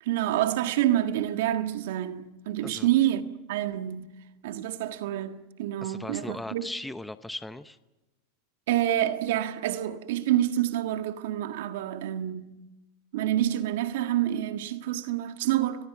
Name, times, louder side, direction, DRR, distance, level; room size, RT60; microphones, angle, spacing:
voice 1, 0.0-4.1 4.4-6.7 8.7-12.5 13.1-15.9, right 12 dB, 70° right, 1.6 m, -27 dB
voice 2, 5.8-7.8, left 2 dB, 5° left, 0.8 m, -38 dB
29.5 x 22.0 x 6.0 m
hypercardioid pair, 120°, 0 cm